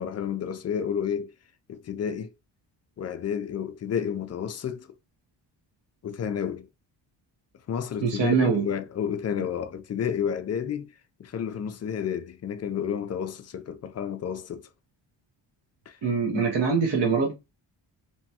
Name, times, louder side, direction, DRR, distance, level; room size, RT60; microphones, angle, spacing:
voice 1, 0.0-1.3 1.7-2.3 3.0-4.9 6.0-6.7 7.7-10.9 11.2-14.7 15.9-16.0 16.3-16.5, left 8 dB, 35° left, 0.4 m, -31 dB
voice 2, 8.0-8.6 16.0-17.4, right 5 dB, 60° right, 1.1 m, -24 dB
3.0 x 2.2 x 2.7 m
cardioid pair, 70°, 48 cm